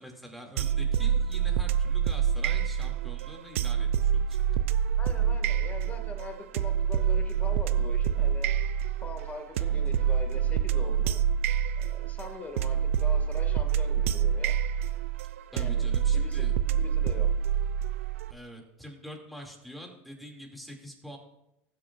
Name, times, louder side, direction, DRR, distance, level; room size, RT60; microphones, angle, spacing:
voice 1, 0.0-4.4 9.5-9.8 15.5-16.5 18.3-21.2, equal, ahead, 1 dB, 2.5 m, -45 dB
sound 1, 0.6-18.3, right 8 dB, 90° right, 0.4 m, -27 dB
voice 2, 5.0-8.5 9.0-11.2 11.8-14.6 15.5-17.3, left 3 dB, 25° left, 4 dB, 2.1 m, -42 dB
19.0 x 7.6 x 2.6 m, 0.85 s
supercardioid pair, 100°, 7 cm